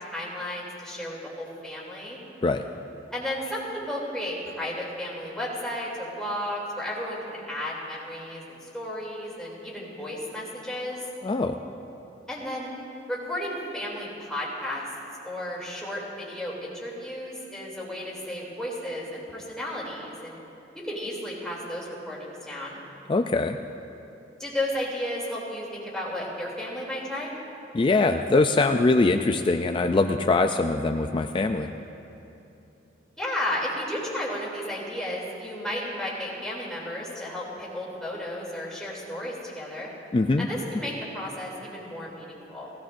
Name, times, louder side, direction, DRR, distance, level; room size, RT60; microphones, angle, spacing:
voice 1, 0.0-2.2 3.1-11.0 12.3-12.7 13.1-14.8 15.2-20.4 20.7-22.8 24.4-27.3 33.2-39.9 40.4-42.7, left 1 dB, 5° left, -6 dB, 2.9 m, -33 dB
voice 2, 11.2-11.6 23.1-23.6 27.7-31.7 40.1-40.5, left 3 dB, 25° left, 5 dB, 0.4 m, -22 dB
20.0 x 16.5 x 2.6 m, 2.9 s
head